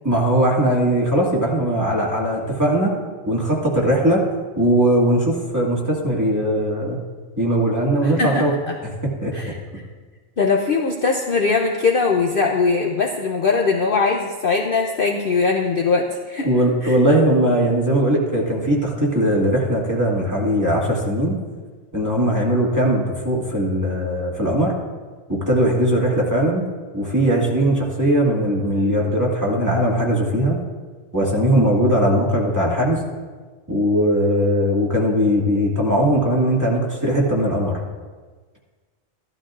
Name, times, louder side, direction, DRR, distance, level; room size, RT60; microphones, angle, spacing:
voice 1, 0.0-3.0 3.3-4.2 4.6-7.0 7.4-8.5 9.0-9.5 16.4-21.4 21.9-24.7 25.3-26.6 26.9-30.6 31.1-33.0 33.7-37.8, right 1 dB, 15° right, -4 dB, 1.8 m, -19 dB
voice 2, 8.0-8.5 9.3-9.6 10.4-16.5 16.8-17.0, left 4 dB, 50° left, 1 dB, 0.8 m, -20 dB
14.5 x 12.0 x 2.5 m, 1.4 s
omnidirectional pair, 1.3 m